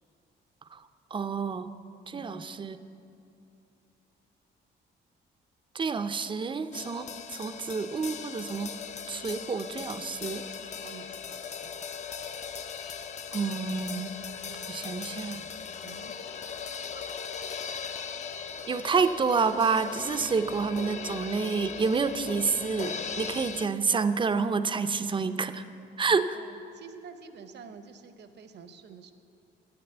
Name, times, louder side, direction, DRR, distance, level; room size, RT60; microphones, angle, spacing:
voice 1, 1.1-1.7 2.1-2.8 5.7-8.7 9.1-10.4 13.3-14.1 14.7-15.4 18.7-25.6 26.0-26.4, right 5 dB, 25° right, 11 dB, 0.4 m, -28 dB
sound 1, 6.7-23.7, left 6 dB, 35° left, 0.4 m, -39 dB
voice 2, 10.6-11.7 15.8-16.1 26.3-29.1, right 6 dB, 60° right, 9 dB, 0.7 m, -48 dB
7.8 x 6.8 x 7.9 m, 2.7 s
cardioid pair, 90°, 20 cm